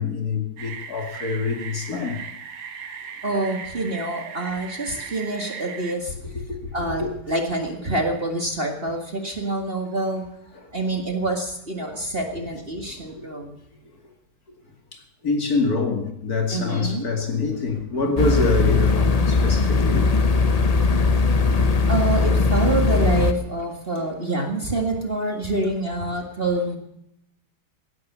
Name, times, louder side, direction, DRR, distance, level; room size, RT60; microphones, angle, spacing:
voice 1, 0.0-2.2 6.2-6.7 11.8-12.0 12.9-13.3 14.9-20.2 20.8-20.9 21.4-21.6, left 4 dB, 45° left, 2.7 m, -26 dB
sound 1, 0.6-6.0, right 7 dB, 90° right, 2.5 m, -38 dB
voice 2, 3.2-6.1 6.7-10.2 10.7-13.6 16.5-17.1 21.9-26.8, right 2 dB, 30° right, 2.1 m, -26 dB
sound 2, 18.2-23.3, left 4 dB, 65° left, 0.3 m, -19 dB
17.5 x 11.0 x 6.9 m
omnidirectional pair, 2.3 m